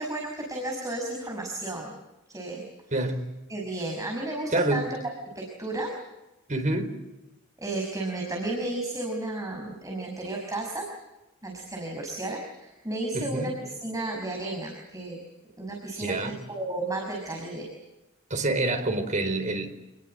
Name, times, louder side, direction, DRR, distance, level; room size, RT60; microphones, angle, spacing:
voice 1, 0.0-1.9 2.3-2.6 3.5-5.0 5.4-5.9 7.6-10.9 11.4-15.2 15.6-17.7, right 2 dB, 15° right, 1 dB, 5.7 m, -33 dB
voice 2, 4.5-4.8 6.5-6.9 13.1-13.5 16.0-16.4 18.3-19.7, right 2 dB, 40° right, 6 dB, 4.3 m, -27 dB
29.0 x 20.5 x 7.8 m, 1.0 s
head